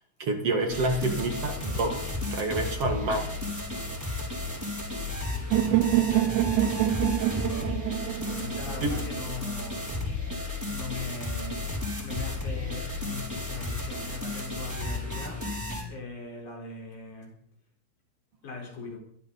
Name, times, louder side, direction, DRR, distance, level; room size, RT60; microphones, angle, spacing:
voice 1, 0.2-3.4 8.8-9.0, right 2 dB, 55° right, 2.4 m, -28 dB
sound 1, 0.7-15.8, left 2 dB, 5° right, 4.5 m, -33 dB
voice 2, 5.5-6.4 8.1-9.9 10.7-11.7 12.0-15.5 15.9-17.3 18.4-19.0, left 4 dB, 65° left, 5.8 m, -40 dB
sound 2, 5.5-9.5, right 13 dB, 75° right, 2.1 m, -26 dB
22.5 x 14.0 x 4.1 m
omnidirectional pair, 3.7 m